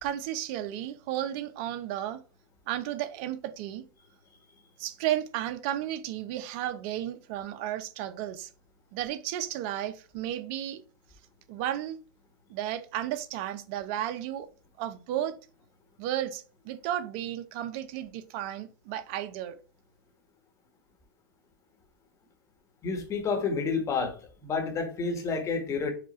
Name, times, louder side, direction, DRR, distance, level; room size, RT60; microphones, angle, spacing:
voice 1, 0.0-2.2 2.7-3.8 4.8-8.5 8.9-10.8 11.5-12.0 12.5-14.5 14.8-15.3 16.0-19.6, right 12 dB, 50° right, 0.6 m, -33 dB
voice 2, 22.8-24.2 24.4-25.9, left 4 dB, 25° left, 1.3 m, -29 dB
5.0 x 2.4 x 4.3 m
hypercardioid pair, 120°, 11 cm